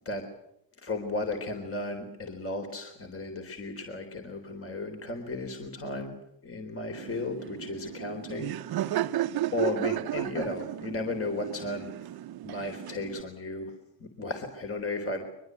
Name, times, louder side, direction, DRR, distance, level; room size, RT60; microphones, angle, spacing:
voice 1, 0.8-9.1 9.5-11.9 12.4-13.7 14.0-15.3, left 2 dB, 30° left, 4 dB, 3.8 m, -35 dB
Laughter, 6.9-13.2, right 13 dB, 55° right, 1.0 m, -34 dB
23.5 x 21.0 x 8.2 m, 0.80 s
cardioid pair, 95°, 43 cm